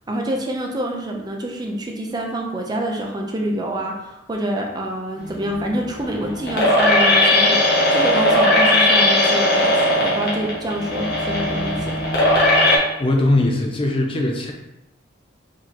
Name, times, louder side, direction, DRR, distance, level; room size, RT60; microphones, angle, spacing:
voice 1, 0.1-12.0, right 1 dB, 20° right, 0 dB, 0.6 m, -27 dB
sound 1, 5.2-12.8, left 1 dB, 55° left, 1.3 m, -18 dB
voice 2, 13.0-14.5, left 2 dB, 25° left, 1 dB, 0.5 m, -20 dB
4.6 x 3.7 x 2.9 m, 0.89 s
head